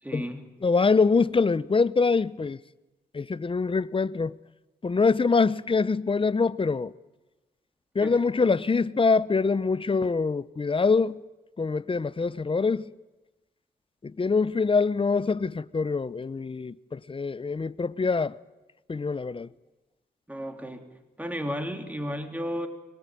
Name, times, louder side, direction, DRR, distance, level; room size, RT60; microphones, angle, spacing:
voice 1, 0.0-0.5 8.0-8.2 20.3-20.9 21.2-22.7, equal, 10° right, 3.5 m, -33 dB
voice 2, 0.6-2.6 3.1-4.4 4.8-6.9 7.9-11.2 11.6-12.9 14.0-18.3 18.9-19.5, left 4 dB, 30° left, 0.8 m, -24 dB
23.5 x 20.5 x 9.2 m
cardioid pair, 70°, 18 cm